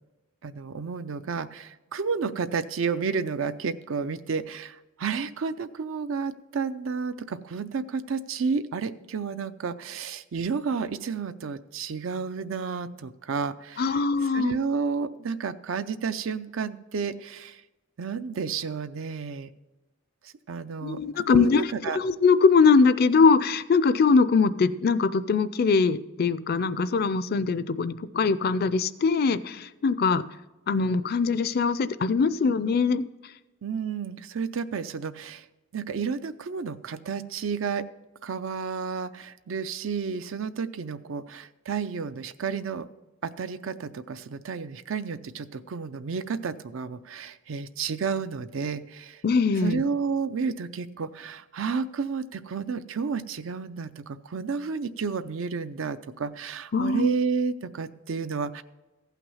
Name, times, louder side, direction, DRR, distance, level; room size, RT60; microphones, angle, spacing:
voice 1, 0.4-17.6 18.0-19.5 20.5-22.0 33.6-35.4 35.7-37.8 38.2-42.9 43.2-49.2 49.6-58.6, right 5 dB, 70° right, 13 dB, 0.5 m, -31 dB
voice 2, 13.8-14.6 20.8-21.6 21.9-30.2 30.7-33.0 49.2-49.8 56.7-57.1, left 4 dB, 45° left, 15 dB, 0.4 m, -22 dB
15.0 x 5.9 x 5.5 m, 1.1 s
head